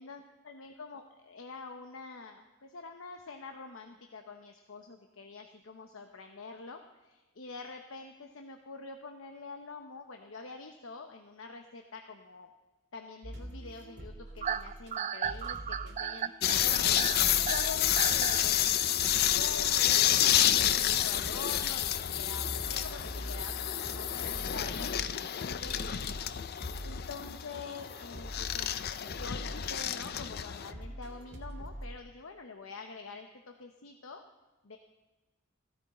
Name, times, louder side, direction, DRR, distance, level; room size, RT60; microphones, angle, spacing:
voice 1, 0.0-12.5 12.9-16.3 16.6-26.0 26.8-28.8 29.2-34.2 34.6-34.8, left 4 dB, 80° left, 5 dB, 0.9 m, -46 dB
sound 1, 13.2-14.9 15.2-31.9, equal, 55° right, 1.8 m, -45 dB
sound 2, 14.4-18.5, right 8 dB, 35° right, 0.3 m, -35 dB
sound 3, 16.4-30.7, left 11 dB, 50° left, 0.5 m, -29 dB
15.0 x 14.0 x 4.2 m, 1.2 s
head